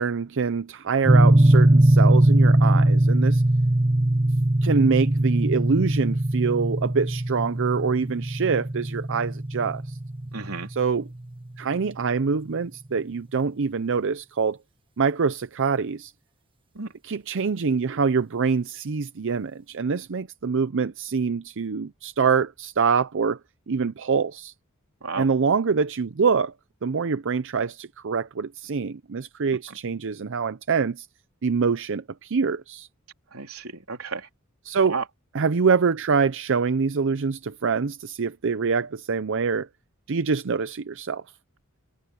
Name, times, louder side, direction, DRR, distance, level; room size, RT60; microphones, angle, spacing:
voice 1, 0.0-3.4 4.6-10.0 10.7-11.1 11.6-14.6 15.0-16.1 17.0-23.4 23.7-24.5 25.2-26.5 26.8-31.1 31.4-32.9 34.6-35.0 35.3-39.7 40.1-41.2, right 5 dB, 60° right, 0.6 m, -25 dB
sound 1, 1.1-11.2, right 1 dB, 25° right, 1.7 m, -20 dB
voice 2, 10.3-10.7 16.8-16.9 25.0-25.3 29.7-29.8 33.3-34.3 34.9-35.0, right 4 dB, 85° right, 3.5 m, -32 dB
head